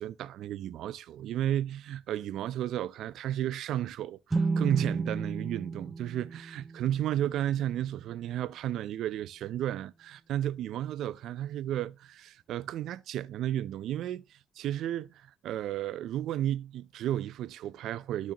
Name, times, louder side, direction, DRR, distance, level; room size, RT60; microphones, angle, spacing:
voice 1, 0.0-18.3, right 12 dB, 80° right, 0.5 m, -33 dB
sound 1, 4.3-7.9, right 4 dB, 15° right, 0.6 m, -33 dB
12.5 x 6.2 x 2.9 m
cardioid pair, 90°, 0 cm